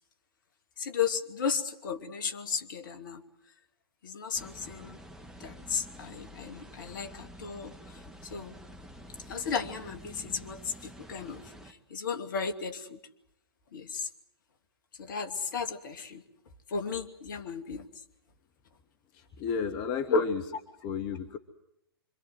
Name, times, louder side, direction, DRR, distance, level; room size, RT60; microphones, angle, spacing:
voice 1, 0.8-3.2 4.0-5.0 5.4-8.6 9.3-13.0 13.7-14.1 15.0-16.2 16.7-17.9 20.1-20.2, left 5 dB, 55° left, 8 dB, 2.6 m, -34 dB
sound 1, 4.3-11.7, equal, 5° right, 1.8 m, -49 dB
voice 2, 19.1-20.4 20.8-21.4, left 6 dB, 30° left, 7 dB, 1.8 m, -33 dB
26.5 x 25.0 x 8.0 m, 0.79 s
figure-of-eight pair, 115°, 13 cm